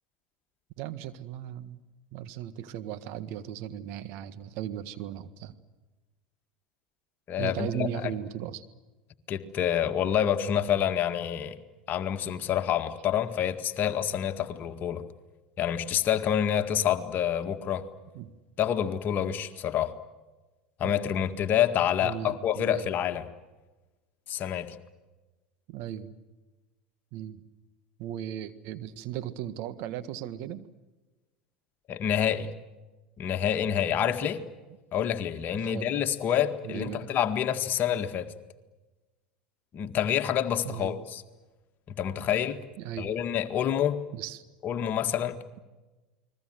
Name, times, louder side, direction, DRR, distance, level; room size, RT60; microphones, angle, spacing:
voice 1, 0.8-1.8 2.1-5.5 7.4-8.6 18.1-18.3 20.8-21.0 22.0-22.8 25.7-26.1 27.1-27.4 28.0-30.7 35.6-35.9 36.6-37.1 40.6-41.0 42.8-43.2 44.1-44.4, right 11 dB, 60° right, 11 dB, 1.6 m, -37 dB
voice 2, 7.3-8.1 9.3-11.6 11.9-15.0 15.6-17.9 18.6-19.9 20.8-23.3 24.3-24.8 31.9-32.5 33.2-34.4 34.9-38.3 39.7-41.2 41.9-42.6 43.0-44.0 44.6-45.4, left 9 dB, 45° left, 7 dB, 2.0 m, -27 dB
29.5 x 21.5 x 7.9 m, 1.2 s
hypercardioid pair, 80°, 4 cm